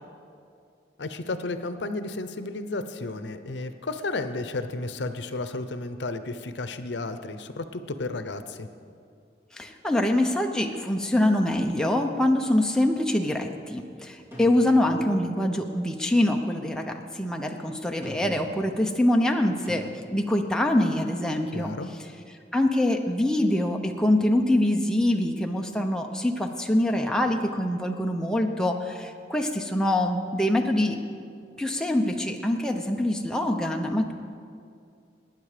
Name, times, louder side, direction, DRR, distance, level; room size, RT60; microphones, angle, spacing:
voice 1, 1.0-8.7 21.5-21.9, left 2 dB, 80° left, 10 dB, 0.7 m, -33 dB
voice 2, 9.5-19.9 20.1-21.7 22.5-31.0 31.6-34.1, left 1 dB, 5° left, 2 dB, 0.7 m, -24 dB
sound 1, 14.3-15.3 18.0-18.6 19.7-19.8, equal, 15° right, 3.3 m, -42 dB
19.5 x 9.4 x 5.0 m, 2.3 s
head